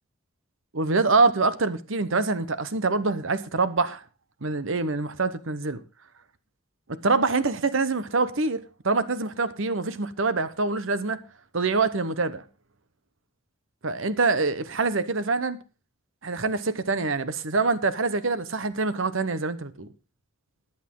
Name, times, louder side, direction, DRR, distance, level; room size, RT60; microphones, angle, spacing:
voice 1, 0.7-4.0 4.4-5.8 6.9-11.2 11.5-12.4 13.8-15.6 16.2-19.9, right 3 dB, 65° right, 1.0 m, -25 dB
14.5 x 10.0 x 3.8 m
head